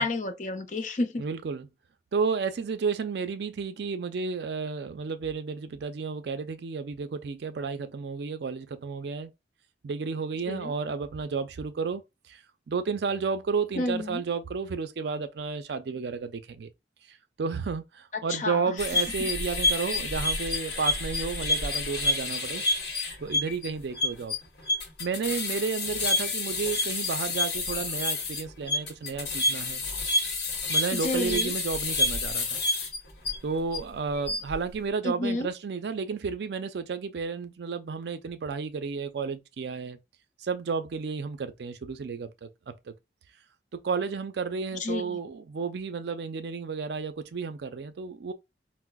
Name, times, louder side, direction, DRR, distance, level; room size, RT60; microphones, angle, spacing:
voice 1, 0.0-1.2 10.5-10.7 13.8-14.2 18.3-18.7 19.2-19.3 30.9-31.5 35.0-35.5 44.8-45.2, left 2 dB, 45° left, 0.5 m, -30 dB
voice 2, 1.2-1.7 2.1-9.3 9.8-12.0 12.3-12.4 12.7-16.7 17.1-22.6 23.2-24.4 25.0-29.8 30.7-32.6 33.4-40.0 40.4-42.9 43.7-48.3, right 5 dB, 70° right, 0.4 m, -32 dB
sound 1, 18.8-33.8 34.2-34.5, left 2 dB, 70° left, 0.9 m, -29 dB
4.7 x 2.0 x 2.2 m
head